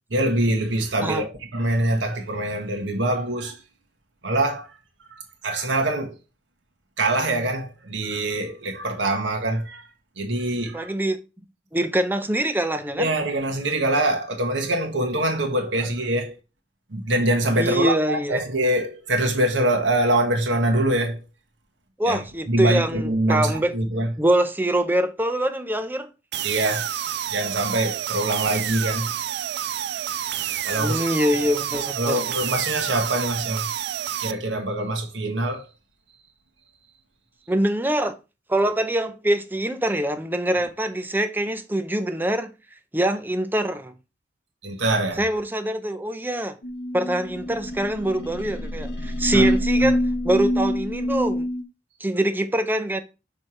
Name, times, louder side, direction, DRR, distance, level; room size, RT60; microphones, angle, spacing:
voice 1, 0.1-3.6 4.2-4.7 5.1-6.1 7.0-9.8 10.2-10.9 12.9-16.4 16.9-21.2 22.1-22.2 22.5-24.1 26.4-26.9 27.3-29.1 30.4-31.1 31.7-33.7 34.2-35.6 44.6-45.2 49.3-49.5, right 1 dB, 85° right, 1.5 m, -24 dB
voice 2, 10.7-11.2 11.7-13.1 17.6-18.4 22.0-23.7 24.2-26.1 30.8-32.2 37.5-38.2 38.5-42.5 42.9-43.9 45.2-46.6 46.9-51.5 52.0-53.0, right 1 dB, 10° right, 0.6 m, -24 dB
sound 1, 26.3-34.3, right 10 dB, 65° right, 0.4 m, -29 dB
sound 2, 46.6-51.6, equal, 70° left, 1.1 m, -25 dB
6.4 x 3.4 x 4.4 m
head